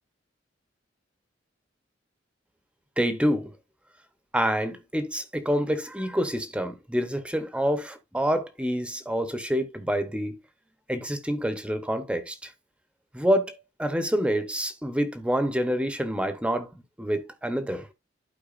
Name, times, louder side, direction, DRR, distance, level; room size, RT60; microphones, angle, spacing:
voice 1, 3.0-3.5 4.3-10.4 10.9-12.5 13.1-16.7 17.0-17.9, equal, 5° right, 0.8 m, -27 dB
12.0 x 4.6 x 2.5 m
head